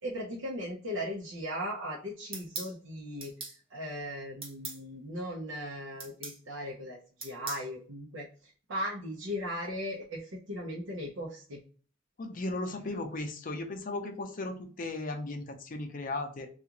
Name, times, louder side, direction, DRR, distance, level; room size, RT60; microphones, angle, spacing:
voice 1, 0.0-3.3 3.7-11.6, equal, 80° right, -2 dB, 0.7 m, -38 dB
sound 1, 2.3-2.7 3.2-3.6 4.4-4.8 6.0-6.4 7.2-7.7, right 3 dB, 30° right, 0.8 m, -40 dB
voice 2, 12.2-16.5, left 2 dB, 45° left, 6 dB, 0.5 m, -36 dB
3.6 x 2.4 x 2.9 m, 0.40 s
head